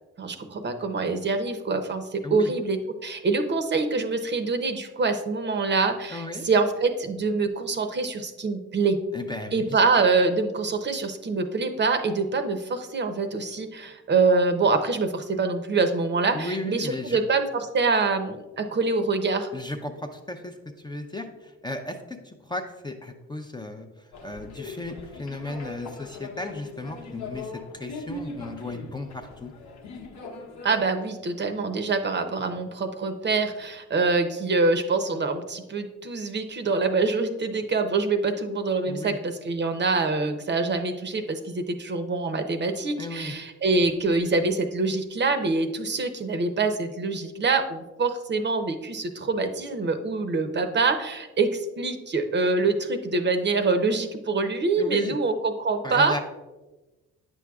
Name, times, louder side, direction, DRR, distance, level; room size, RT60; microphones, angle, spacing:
voice 1, 0.2-9.0 9.5-19.5 30.6-56.2, right 3 dB, 35° right, 7 dB, 0.7 m, -25 dB
voice 2, 6.1-6.5 9.1-9.8 16.3-17.2 19.5-20.5 20.8-23.9 24.2-29.5 38.8-39.2 43.0-43.3 54.8-55.2 55.8-56.2, left 2 dB, 15° left, 4 dB, 0.5 m, -35 dB
sound 1, 24.1-30.8, left 2 dB, 65° left, 0.9 m, -40 dB
8.9 x 6.2 x 2.3 m, 1.1 s
cardioid pair, 90°, 30 cm